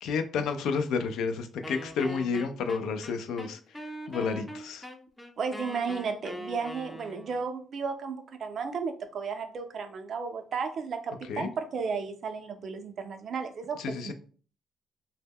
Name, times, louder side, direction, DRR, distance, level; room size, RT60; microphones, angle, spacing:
voice 1, 0.0-3.6 4.1-4.9 11.3-11.5 13.8-14.1, left 5 dB, 85° left, 8 dB, 0.3 m, -30 dB
Wind instrument woodwind instrument, 1.6-7.5, equal, 5° left, 0.4 m, -42 dB
voice 2, 5.4-14.1, right 5 dB, 60° right, 7 dB, 0.4 m, -34 dB
2.1 x 2.0 x 3.4 m, 0.42 s
cardioid pair, 90°, 0 cm